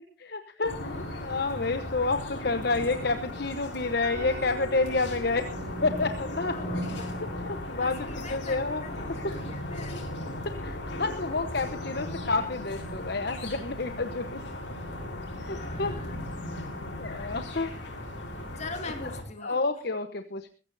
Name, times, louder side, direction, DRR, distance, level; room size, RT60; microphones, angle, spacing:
voice 1, 0.2-1.0 1.2-5.5 5.8-6.6 7.3-8.8 9.2-9.3 10.4-14.4 15.4-15.9 16.4-16.7 17.0-18.0 19.4-20.5, left 3 dB, 55° left, 8 dB, 1.0 m, -29 dB
sound 1, 0.6-19.2, left 1 dB, 75° left, 5.9 m, -36 dB
Mallet percussion, 4.0-9.9, right 1 dB, 85° right, 2.2 m, -47 dB
voice 2, 6.4-7.4 7.8-10.0 15.3-16.2 18.6-19.6, left 3 dB, 35° left, 6 dB, 2.4 m, -43 dB
21.0 x 15.5 x 2.7 m, 0.37 s
head